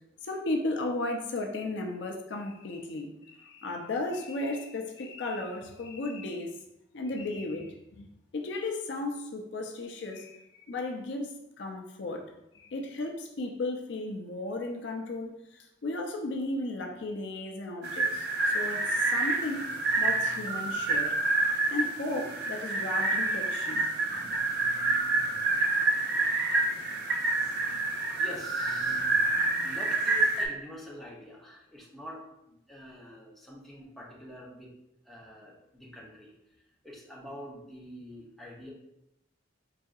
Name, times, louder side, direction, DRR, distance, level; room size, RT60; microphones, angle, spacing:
voice 1, 0.2-6.6 6.9-12.3 12.5-19.7 20.0-21.2 21.7-23.9 28.9-29.0, left 2 dB, 60° left, 2 dB, 0.4 m, -35 dB
sound 1, 17.8-30.4, right 2 dB, 55° right, 0.5 m, -28 dB
voice 2, 28.1-29.4 29.6-34.7 35.0-36.3 36.8-38.7, equal, ahead, -5 dB, 0.6 m, -46 dB
4.8 x 2.7 x 2.3 m, 0.84 s
head